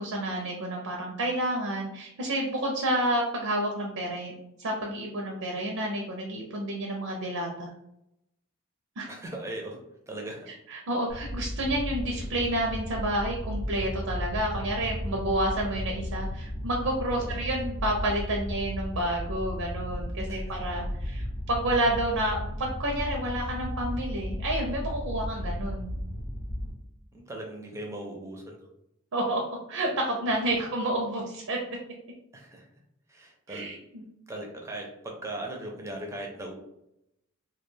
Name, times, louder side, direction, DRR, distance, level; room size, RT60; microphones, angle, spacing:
voice 1, 0.0-7.7 9.0-9.1 10.5-26.0 29.1-29.4 29.7-31.6 33.5-34.0, right 1 dB, 75° right, 0 dB, 0.5 m, -30 dB
voice 2, 9.1-9.8 10.1-10.5 17.2-17.4 20.3-20.4 25.3-25.4 27.1-28.6 32.3-32.6 33.1-33.6 34.3-36.5, right 1 dB, 15° right, 0 dB, 0.4 m, -38 dB
sound 1, 11.1-26.7, equal, 65° left, 0.6 m, -34 dB
2.3 x 2.2 x 3.1 m, 0.82 s
head